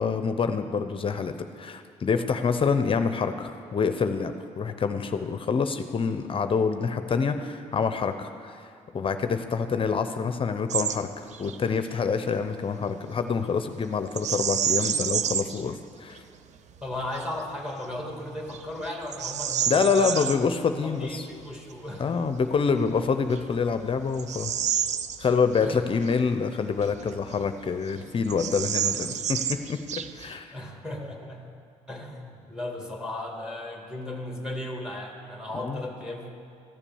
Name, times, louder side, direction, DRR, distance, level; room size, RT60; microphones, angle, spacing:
voice 1, 0.0-8.7 8.9-16.2 19.7-21.3 22.0-24.5 25.2-30.6 35.6-35.8, left 5 dB, 40° left, 9 dB, 0.6 m, -26 dB
Bird vocalization bird call bird song, 10.7-11.0 11.3-11.6 14.1-15.6 16.2-16.3 16.9-17.3 17.8-17.9 18.5-20.4 22.5-22.6 23.2-25.7 26.0-26.1 26.8-27.6 27.9-28.0 28.2-30.4, right 9 dB, 60° right, 0.5 m, -29 dB
voice 2, 16.8-20.3 20.8-22.3 25.6-25.8 30.5-31.6 31.9-36.3, left 1 dB, 5° right, 1 dB, 2.1 m, -36 dB
13.5 x 7.1 x 7.1 m, 2.4 s
supercardioid pair, 70°, 14 cm